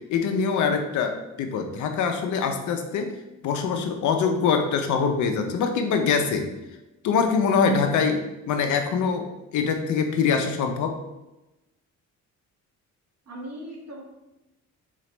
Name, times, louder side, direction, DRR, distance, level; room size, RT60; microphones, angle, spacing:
voice 1, 0.1-3.1 3.4-6.5 7.0-8.2 8.5-9.3 9.5-10.9, left 5 dB, 75° left, 5 dB, 0.6 m, -23 dB
voice 2, 13.2-14.0, right 1 dB, 55° right, -3 dB, 1.5 m, -38 dB
4.1 x 3.1 x 3.0 m, 0.98 s
cardioid pair, 90°, 30 cm